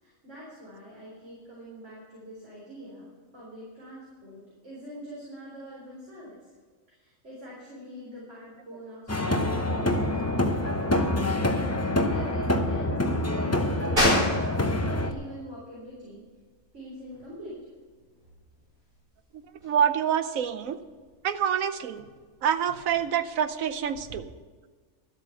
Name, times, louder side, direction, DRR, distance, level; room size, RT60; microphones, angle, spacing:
voice 1, 0.0-6.4 6.9-11.4 12.1-16.2 16.7-17.5, equal, 55° right, -7 dB, 4.3 m, -44 dB
sound 1, 9.1-15.1, left 1 dB, 15° left, 0.6 m, -26 dB
sound 2, 14.0-24.2, left 1 dB, 40° right, 4.5 m, -34 dB
voice 2, 19.6-20.8 21.2-22.0 22.4-24.3, right 8 dB, 70° right, 11 dB, 1.1 m, -26 dB
12.5 x 8.2 x 7.1 m, 1.5 s
omnidirectional pair, 1.5 m